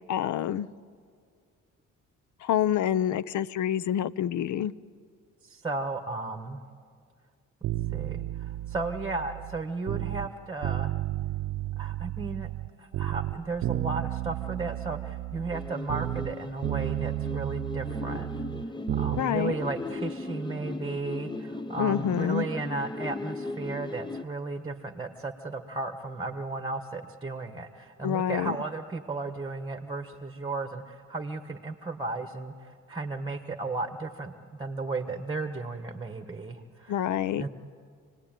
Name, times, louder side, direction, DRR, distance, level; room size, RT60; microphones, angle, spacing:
voice 1, 0.1-0.7 2.4-4.7 19.2-19.6 21.8-22.5 28.0-28.6 36.9-37.4, left 10 dB, 70° left, 17 dB, 0.7 m, -27 dB
voice 2, 5.4-6.6 7.9-10.9 11.8-12.5 12.8-37.0 37.4-37.5, right 3 dB, 15° right, 8 dB, 1.3 m, -35 dB
sound 1, 7.6-10.3 10.6-12.7 12.9-16.4 16.6-19.2 19.5-19.6, right 15 dB, 75° right, 0.6 m, -32 dB
sound 2, 15.5-24.2, left 2 dB, 15° left, 0.7 m, -37 dB
28.0 x 19.0 x 9.1 m, 2.1 s
cardioid pair, 90°, 30 cm